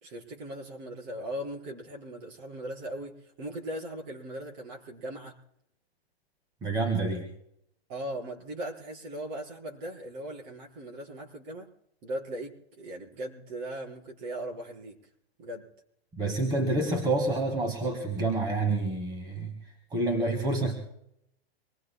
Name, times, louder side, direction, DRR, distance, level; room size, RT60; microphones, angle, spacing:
voice 1, 0.0-5.4 7.9-11.7 12.0-15.0 15.4-15.7, right 1 dB, 40° right, 0 dB, 4.4 m, -39 dB
voice 2, 6.6-7.3 16.1-19.5 19.9-20.8, right 2 dB, 15° right, 4 dB, 1.8 m, -28 dB
25.5 x 21.0 x 2.2 m, 0.76 s
hypercardioid pair, 145°, 32 cm